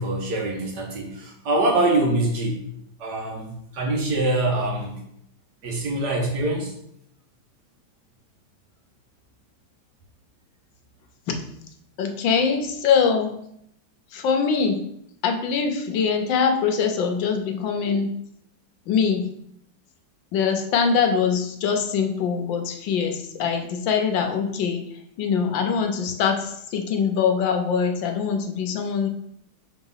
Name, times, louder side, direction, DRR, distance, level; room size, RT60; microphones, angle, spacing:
voice 1, 0.0-2.6 3.0-5.0 5.6-6.7, right 2 dB, 65° right, 0 dB, 1.8 m, -24 dB
voice 2, 12.0-13.3 14.1-14.8 15.2-18.1 18.9-19.2 20.3-24.8 25.2-29.1, left 6 dB, 75° left, 5 dB, 1.5 m, -23 dB
4.5 x 3.9 x 5.5 m, 0.73 s
omnidirectional pair, 2.1 m